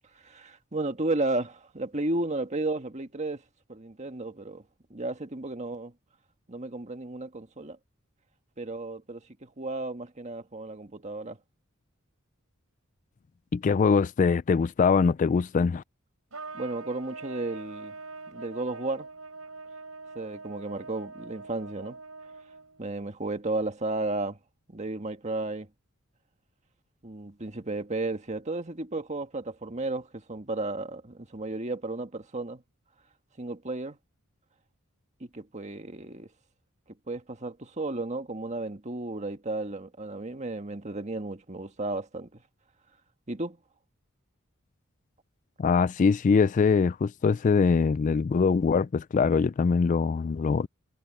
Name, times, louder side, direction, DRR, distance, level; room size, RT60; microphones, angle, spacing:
voice 1, 0.2-3.4 3.7-4.6 4.9-5.9 6.5-7.8 8.6-11.4 16.5-17.9 18.3-19.1 20.1-22.0 22.8-24.4 24.7-25.7 27.0-32.6 33.4-34.0 35.2-36.3 37.1-42.4 43.3-43.6, right 2 dB, 35° right, 1.7 m, -33 dB
voice 2, 13.5-15.8 45.6-50.7, left 5 dB, 35° left, 0.3 m, -23 dB
Trumpet, 16.3-22.8, right 3 dB, 90° right, 6.2 m, -43 dB
head